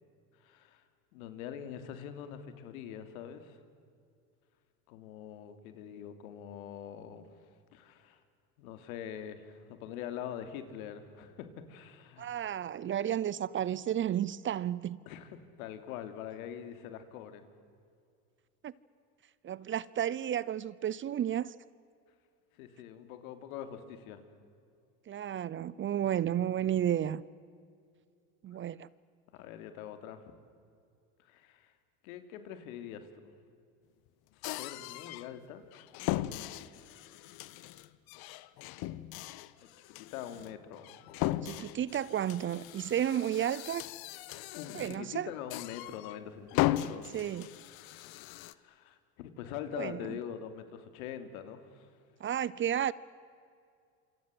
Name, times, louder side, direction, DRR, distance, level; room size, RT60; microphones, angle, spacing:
voice 1, 0.4-0.8 1.1-3.6 4.9-7.3 7.7-8.2 8.6-12.4 15.1-17.4 22.5-24.2 29.3-30.2 31.2-31.7 32.0-33.3 34.3-35.7 36.1-36.6 36.9-37.1 40.0-40.9 41.2-41.4 44.6-47.1 47.9-51.9, left 9 dB, 80° left, 3.1 m, -44 dB
voice 2, 12.2-15.0 18.6-18.7 19.4-21.5 25.1-27.2 28.4-28.9 41.4-43.8 44.7-45.3 47.1-47.5 49.7-50.0 52.2-52.9, right 10 dB, 30° right, 0.6 m, -32 dB
sound 1, 34.4-35.3 35.7-45.1 45.5-46.2 46.5-48.5, left 15 dB, 60° left, 1.2 m, -37 dB
28.0 x 26.0 x 7.8 m
supercardioid pair, 110°, 42 cm